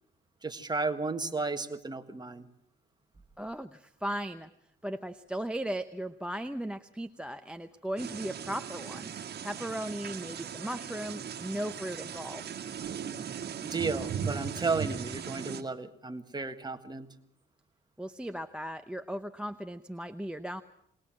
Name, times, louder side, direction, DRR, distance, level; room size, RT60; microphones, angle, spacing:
voice 1, 0.4-2.5 13.6-17.1, right 4 dB, 20° right, 7 dB, 1.7 m, -33 dB
voice 2, 3.4-4.5 4.8-9.1 9.4-12.5 18.0-20.6, right 1 dB, 5° right, 12 dB, 0.8 m, -37 dB
sound 1, 8.0-15.6, right 7 dB, 55° right, 1.8 m, -38 dB
21.0 x 19.5 x 7.5 m, 0.72 s
cardioid pair, 90°, 20 cm